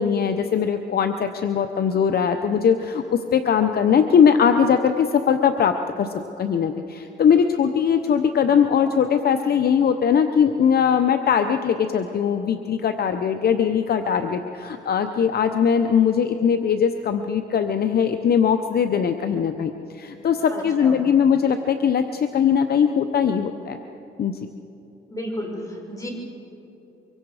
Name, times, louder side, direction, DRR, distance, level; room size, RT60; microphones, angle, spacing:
voice 1, 0.0-6.1 6.4-23.8 24.2-24.4, left 7 dB, 50° left, 7 dB, 0.8 m, -20 dB
voice 2, 20.5-21.0 25.1-26.1, equal, 15° left, 0 dB, 5.8 m, -32 dB
24.5 x 22.5 x 4.9 m, 2.9 s
cardioid pair, 90°, 20 cm